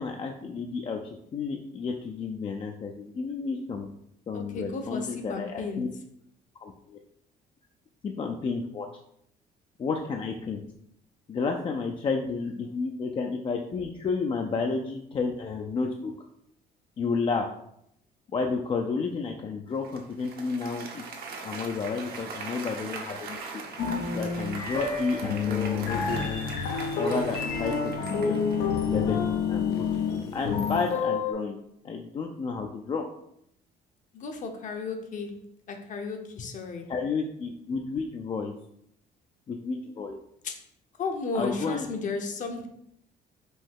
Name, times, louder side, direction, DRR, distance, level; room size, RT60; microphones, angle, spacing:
voice 1, 0.0-3.9 4.3-5.9 6.6-7.0 8.0-8.9 9.8-10.6 11.3-16.1 17.0-17.5 18.3-21.0 21.4-23.5 24.1-26.5 26.9-28.4 28.8-30.0 30.3-31.6 31.8-33.0 36.9-38.5 39.5-40.2 41.3-41.9, left 4 dB, 30° left, 2 dB, 0.4 m, -31 dB
voice 2, 4.3-5.9 34.1-35.4 35.7-36.9 40.4-40.6 41.0-42.7, left 4 dB, 50° left, 5 dB, 0.8 m, -34 dB
Applause, 19.8-28.8, right 4 dB, 65° right, 0.9 m, -41 dB
sound 1, 23.8-31.3, left 6 dB, 85° left, 0.7 m, -29 dB
Bowed string instrument, 25.1-30.6, left 1 dB, 90° right, 0.7 m, -41 dB
5.3 x 2.7 x 3.6 m, 0.74 s
cardioid pair, 110°, 17 cm